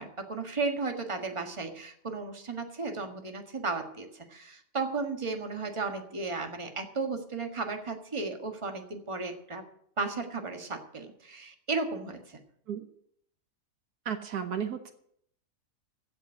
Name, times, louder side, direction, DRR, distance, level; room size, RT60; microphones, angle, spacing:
voice 1, 0.0-9.6 10.0-12.4, right 4 dB, 20° right, 5 dB, 1.5 m, -34 dB
voice 2, 14.0-14.9, right 8 dB, 70° right, 8 dB, 1.5 m, -33 dB
15.5 x 5.5 x 9.7 m, 0.67 s
omnidirectional pair, 1.7 m